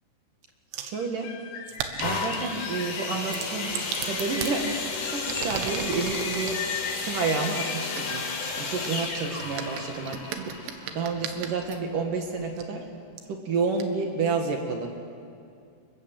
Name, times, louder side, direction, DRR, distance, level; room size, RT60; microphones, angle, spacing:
sound 1, 0.7-1.0 1.7-2.5 3.2-4.6 5.1-6.6 7.4-11.8 12.6-12.7 13.2-13.3 13.8-13.9, right 8 dB, 75° right, 3.8 m, -37 dB
voice 1, 0.8-1.3 2.0-6.6 7.0-8.2 8.6-12.8 13.3-14.9, right 4 dB, 55° right, 3 dB, 2.7 m, -30 dB
sound 2, 0.9-8.8, left 6 dB, 80° left, 4.6 m, -39 dB
sound 3, 2.0-11.7 12.4-12.5, left 4 dB, 55° left, 4.8 m, -33 dB
29.0 x 23.0 x 7.7 m, 2.4 s
omnidirectional pair, 5.7 m